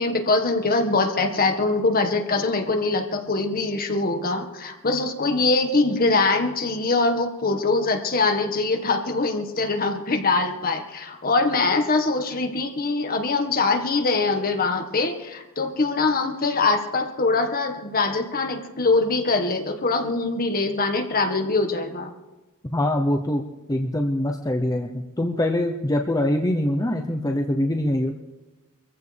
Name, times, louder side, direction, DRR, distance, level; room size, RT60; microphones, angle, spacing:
voice 1, 0.0-22.1, left 3 dB, 40° left, 5 dB, 1.6 m, -23 dB
voice 2, 22.7-28.1, left 1 dB, 15° left, 2 dB, 0.8 m, -24 dB
24.5 x 15.0 x 3.5 m, 1.1 s
head